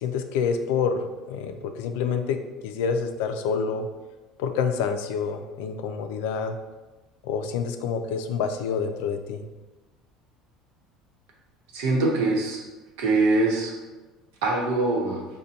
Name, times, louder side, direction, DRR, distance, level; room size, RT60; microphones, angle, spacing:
voice 1, 0.0-3.9 4.4-6.5 7.2-9.4, left 6 dB, 80° left, 7 dB, 0.3 m, -27 dB
voice 2, 11.7-12.6 13.0-13.7 14.4-15.3, right 2 dB, 80° right, -1 dB, 0.9 m, -23 dB
5.1 x 2.2 x 2.8 m, 1.2 s
cardioid pair, 170°, 0 cm